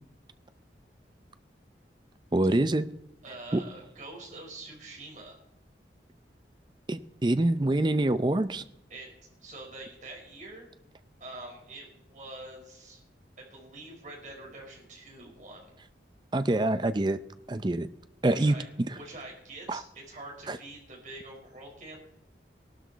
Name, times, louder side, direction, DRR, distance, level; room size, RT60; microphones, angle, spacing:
voice 1, 2.3-2.9 3.5-3.6 6.9-8.6 16.3-17.2 17.5-17.9 18.2-18.6 19.7-19.8 20.5-20.6, right 2 dB, 25° right, 12 dB, 0.5 m, -25 dB
voice 2, 3.2-5.4 8.9-9.1 9.4-10.7 11.2-13.0 13.4-15.7 18.3-18.7 18.9-22.0, right 2 dB, 45° right, -1 dB, 4.7 m, -45 dB
18.5 x 12.5 x 4.1 m, 0.83 s
head